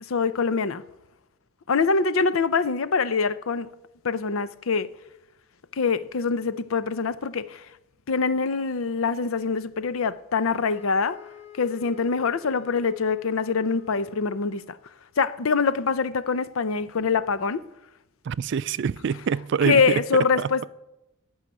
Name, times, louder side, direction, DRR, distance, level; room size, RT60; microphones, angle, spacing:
voice 1, 0.1-0.8 1.7-3.7 4.0-4.9 5.7-7.6 8.1-11.2 11.6-14.8 15.2-17.6 19.6-20.7, left 5 dB, 75° left, 0.6 m, -24 dB
sound 1, 10.5-14.9, left 10 dB, 50° left, 5.4 m, -48 dB
voice 2, 18.2-20.0 20.4-20.7, right 6 dB, 60° right, 0.3 m, -25 dB
15.5 x 5.6 x 9.7 m
head